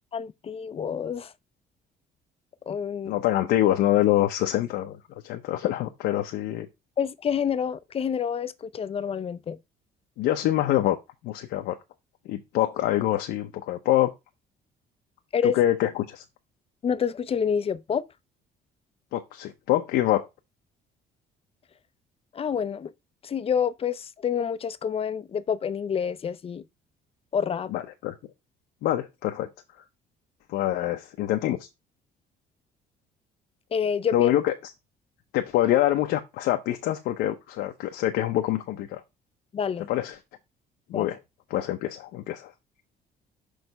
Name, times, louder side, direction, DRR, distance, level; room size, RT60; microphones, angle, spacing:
voice 1, 0.1-1.3 2.7-3.2 7.0-9.6 15.3-15.6 16.8-18.0 22.3-22.9 23.2-26.6 27.3-27.7 33.7-34.3 39.5-39.9 40.9-41.1, left 7 dB, 35° left, 0.6 m, -28 dB
voice 2, 3.1-5.0 5.2-6.7 10.2-11.0 11.2-11.8 12.3-14.1 15.4-16.2 19.1-20.2 27.7-28.1 28.8-29.5 30.5-31.7 34.1-34.5 35.3-39.0 39.9-40.2 40.9-41.2 41.5-42.5, left 13 dB, 85° left, 0.8 m, -25 dB
6.4 x 3.4 x 5.3 m
cardioid pair, 110°, 17 cm